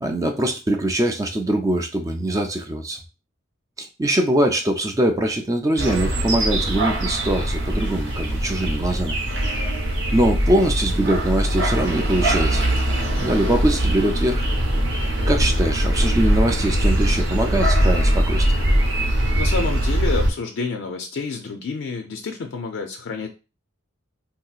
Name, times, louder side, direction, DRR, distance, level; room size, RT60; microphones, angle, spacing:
voice 1, 0.0-3.0 3.8-9.2 10.1-12.7 13.2-14.4 15.3-18.6, right 1 dB, 15° right, 4 dB, 0.4 m, -22 dB
sound 1, 5.8-20.3, right 1 dB, 65° right, 0.9 m, -21 dB
voice 2, 19.4-23.3, left 4 dB, 65° left, 4 dB, 0.4 m, -28 dB
3.6 x 2.7 x 2.3 m, 0.30 s
head